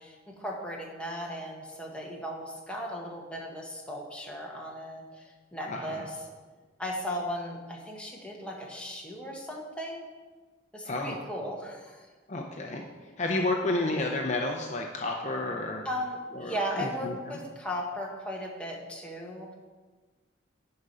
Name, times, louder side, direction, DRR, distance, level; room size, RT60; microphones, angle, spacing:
voice 1, 0.0-6.2 6.8-10.1 10.7-12.1 15.8-19.5, equal, 5° left, -2 dB, 1.4 m, -36 dB
voice 2, 5.7-6.0 10.8-11.2 12.3-15.8 16.4-17.4, left 2 dB, 40° left, 1 dB, 0.7 m, -31 dB
10.5 x 4.9 x 5.5 m, 1.4 s
head